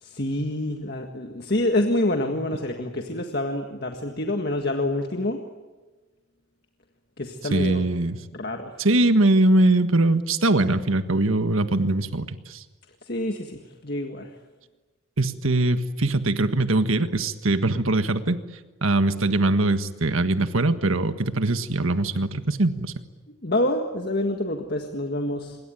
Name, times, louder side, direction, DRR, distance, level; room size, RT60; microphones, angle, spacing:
voice 1, 0.0-5.4 7.2-7.8 8.3-8.7 13.0-14.3 23.4-25.6, left 1 dB, 50° left, 4 dB, 1.8 m, -27 dB
voice 2, 7.5-8.2 8.8-12.6 15.2-18.4 18.8-22.9, right 2 dB, 85° right, 10 dB, 1.6 m, -22 dB
26.5 x 22.5 x 9.2 m, 1.2 s
head